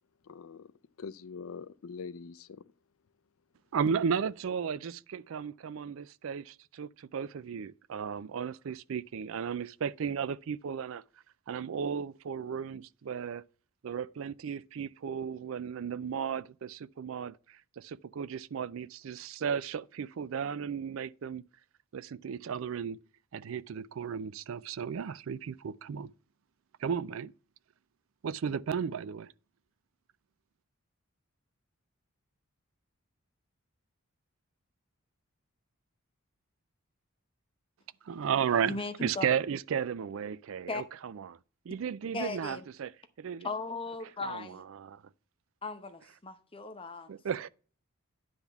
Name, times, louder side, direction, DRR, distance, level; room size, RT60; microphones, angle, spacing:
voice 1, 0.3-0.7 1.0-2.6, left 5 dB, 70° left, 0.5 m, -43 dB
voice 2, 3.7-11.0 11.5-13.4 13.8-17.4 17.8-21.4 21.9-23.0 23.3-26.1 26.8-27.3 28.2-29.3 38.1-41.4 41.7-42.9 43.2-43.5 44.2-45.0 47.1-47.5, right 7 dB, 65° right, 0.4 m, -34 dB
voice 3, 38.6-39.3 40.7-40.8 42.1-42.6 43.4-44.6 45.6-47.1, left 3 dB, 25° left, 0.8 m, -37 dB
10.0 x 3.5 x 7.0 m
head